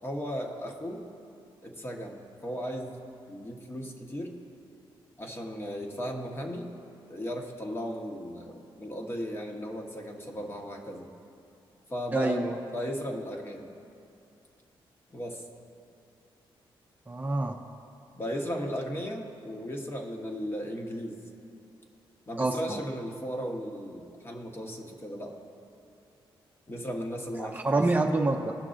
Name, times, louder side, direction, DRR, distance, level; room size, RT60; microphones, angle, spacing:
voice 1, 0.0-1.0 1.6-3.0 3.3-4.4 5.2-6.8 7.1-11.1 11.9-13.7 15.1-15.4 18.2-21.2 22.3-25.4 26.7-27.8, equal, 25° left, 1 dB, 1.1 m, -36 dB
voice 2, 12.1-12.6 17.1-17.6 22.4-22.8 27.4-28.5, right 2 dB, 20° right, 0 dB, 0.6 m, -27 dB
17.5 x 6.0 x 2.5 m, 2.7 s
cardioid pair, 85°, 9 cm